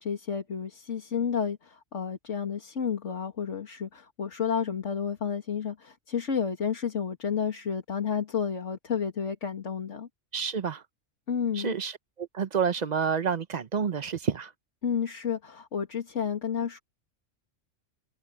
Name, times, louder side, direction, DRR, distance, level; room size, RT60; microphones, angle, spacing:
voice 1, 0.0-10.1 11.3-11.7 14.8-16.8, left 7 dB, 70° left, 2.4 m, -31 dB
voice 2, 10.3-10.8 11.5-14.5, right 6 dB, 40° right, 0.8 m, -29 dB
omnidirectional pair, 1.3 m